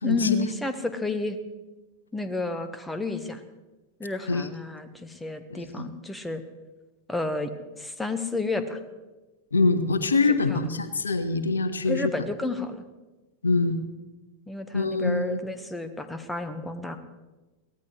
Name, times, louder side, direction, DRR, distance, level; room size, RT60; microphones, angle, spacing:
voice 1, 0.0-1.4 2.1-3.4 4.0-6.4 7.1-7.5 7.8-8.8 10.3-10.7 11.9-12.8 14.5-17.0, left 3 dB, 10° left, 9 dB, 1.4 m, -31 dB
voice 2, 5.5-5.9 9.5-12.1 13.4-13.8 14.7-15.4, left 3 dB, 75° left, 11 dB, 1.1 m, -24 dB
22.5 x 17.5 x 3.3 m, 1.1 s
figure-of-eight pair, 90°, 0 cm